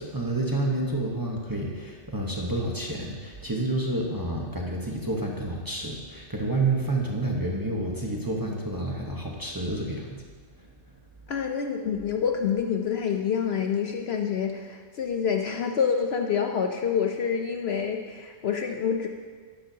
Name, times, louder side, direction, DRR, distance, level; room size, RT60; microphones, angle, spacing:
voice 1, 0.0-10.2, right 2 dB, 20° right, -1 dB, 1.0 m, -29 dB
voice 2, 11.3-19.1, left 7 dB, 60° left, 4 dB, 0.8 m, -27 dB
12.5 x 9.9 x 2.8 m, 1.5 s
omnidirectional pair, 1.3 m